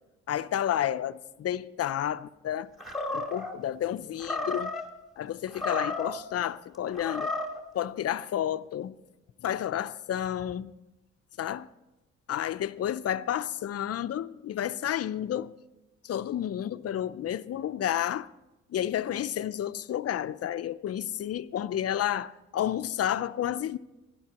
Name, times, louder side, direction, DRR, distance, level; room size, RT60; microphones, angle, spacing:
voice 1, 0.3-2.7 3.1-4.7 5.2-7.3 7.7-9.0 9.4-10.7 11.4-11.7 12.3-15.5 16.0-18.3 18.7-23.8, left 11 dB, 55° left, 0.6 m, -31 dB
Animal, 2.8-3.5 4.2-4.9 5.5-6.2 6.9-7.6, left 2 dB, ahead, 2.1 m, -33 dB
17.0 x 12.0 x 2.9 m
cardioid pair, 90°, 30 cm